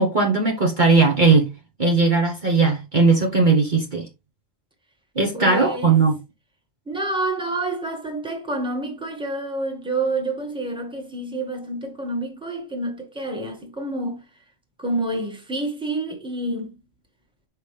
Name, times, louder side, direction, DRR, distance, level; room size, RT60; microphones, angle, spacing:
voice 1, 0.0-1.5 1.8-4.1 5.1-6.1, right 4 dB, 40° right, 1.3 m, -18 dB
voice 2, 5.3-6.0 6.9-14.2 14.8-16.8, right 2 dB, 5° right, 1.6 m, -28 dB
6.5 x 5.1 x 3.3 m
omnidirectional pair, 1.3 m